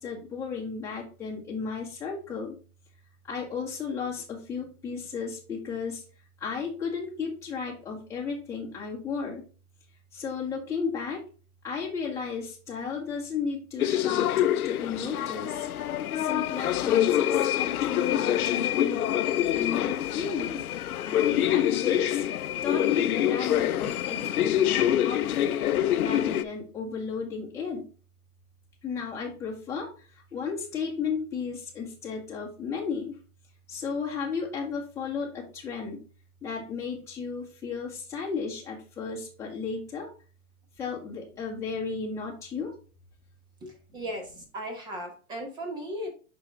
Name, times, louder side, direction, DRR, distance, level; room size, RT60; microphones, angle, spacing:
voice 1, 0.0-2.6 3.2-6.0 6.4-9.4 10.1-11.2 11.6-15.7 16.1-19.0 19.5-20.6 21.1-22.2 22.6-25.6 25.9-27.8 28.8-33.2 33.7-36.0 36.4-40.1 40.8-42.7, left 5 dB, 5° left, -5 dB, 1.7 m, -34 dB
sound 1, 13.8-26.4, left 11 dB, 80° left, 0.7 m, -26 dB
voice 2, 43.6-46.1, equal, 10° right, 3 dB, 1.1 m, -37 dB
5.8 x 5.7 x 3.4 m, 0.37 s
hypercardioid pair, 165°, 43 cm